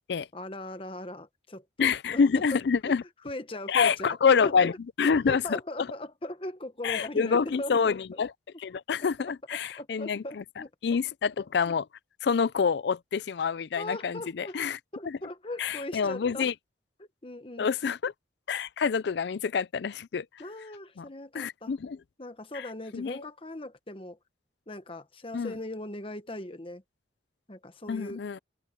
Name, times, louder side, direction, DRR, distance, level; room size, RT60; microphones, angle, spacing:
voice 1, 0.3-2.4 2.9-3.0 3.2-4.2 4.4-8.2 9.3-10.7 13.7-14.6 14.9-16.5 17.0-17.7 20.4-21.8 22.2-24.2 24.7-26.8 27.5-28.3, left 1 dB, 30° left, 1.2 m, -39 dB
voice 2, 1.8-3.0 3.7-4.7 5.0-5.4 6.8-8.3 8.6-10.2 10.8-11.9 12.2-14.8 15.6-16.5 17.6-18.1 18.5-20.2 21.0-21.1 21.3-22.0 22.9-23.2 25.3-25.5 27.9-28.4, left 6 dB, 60° left, 0.4 m, -26 dB
open air
head